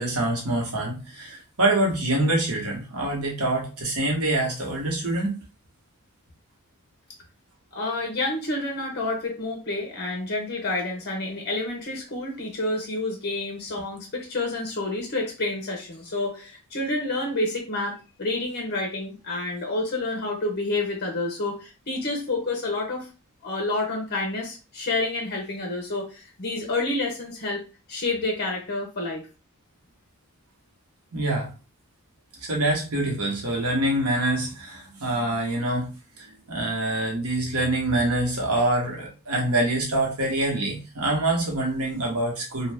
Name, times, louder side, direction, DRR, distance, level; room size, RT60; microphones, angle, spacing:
voice 1, 0.0-5.4 31.1-31.5 32.4-35.9 36.2-42.7, right 1 dB, 75° right, -1 dB, 1.0 m, -25 dB
voice 2, 7.7-23.1 23.4-27.6 27.9-29.3, left 2 dB, 45° left, 1 dB, 0.8 m, -29 dB
2.7 x 2.2 x 3.3 m, 0.31 s
head